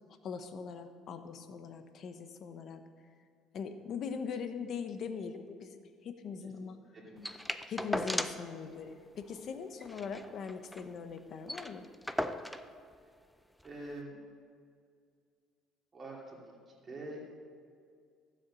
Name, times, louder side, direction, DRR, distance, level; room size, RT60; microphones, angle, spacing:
voice 1, 0.2-2.8 3.5-6.8 7.7-11.9, left 6 dB, 40° left, 8 dB, 0.9 m, -41 dB
voice 2, 6.9-7.4 13.6-14.2 15.9-16.4 16.7-17.2, right 2 dB, 20° right, -4 dB, 2.6 m, -45 dB
sound 1, 7.2-8.5 8.8-8.9 9.2-9.4 9.8-10.9 11.2-11.3 11.5-12.7 13.6-13.7, equal, ahead, 0.4 m, -37 dB
14.5 x 7.7 x 6.2 m, 2.2 s
cardioid pair, 180°, 0 cm